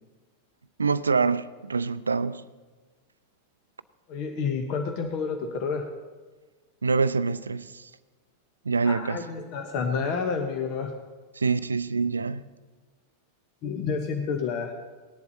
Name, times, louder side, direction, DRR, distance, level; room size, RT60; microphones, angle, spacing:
voice 1, 0.8-2.4 6.8-7.9 8.6-9.3 11.3-12.4, right 4 dB, 75° right, 0.4 m, -25 dB
voice 2, 4.1-5.8 8.8-10.9 13.6-14.7, left 5 dB, 40° left, 1.1 m, -29 dB
18.0 x 11.0 x 2.9 m
figure-of-eight pair, 90°, 0 cm